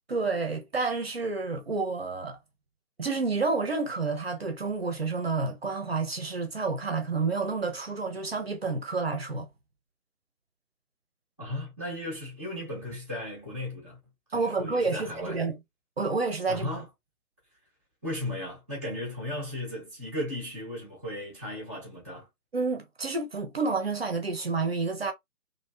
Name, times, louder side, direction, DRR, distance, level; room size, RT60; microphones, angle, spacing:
voice 1, 0.1-2.4 3.0-9.5 14.3-15.6 16.0-16.7 22.5-25.1, right 4 dB, 40° right, 0.8 m, -29 dB
voice 2, 11.4-14.0 14.3-15.4 16.5-16.9 18.0-22.3, left 1 dB, 10° left, 0.7 m, -36 dB
3.1 x 2.7 x 2.9 m
figure-of-eight pair, 150°, 46 cm